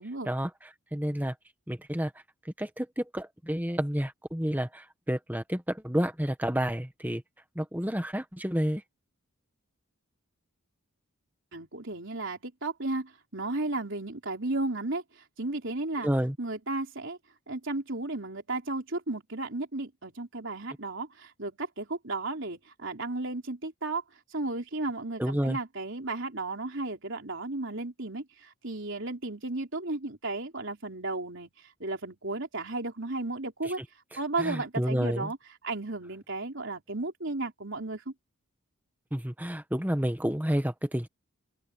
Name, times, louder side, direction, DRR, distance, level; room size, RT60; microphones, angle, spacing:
voice 1, 0.2-1.3 1.7-2.1 2.6-7.2 7.5-8.8 16.0-16.4 25.2-25.6 33.6-33.8 34.1-35.3 39.1-41.1, equal, 10° right, 1.6 m, -30 dB
voice 2, 11.5-15.0 15.4-16.1 16.4-17.2 17.5-24.0 24.3-31.5 31.8-33.8 34.2-35.4 35.6-38.1, right 2 dB, 55° right, 4.0 m, -34 dB
open air
head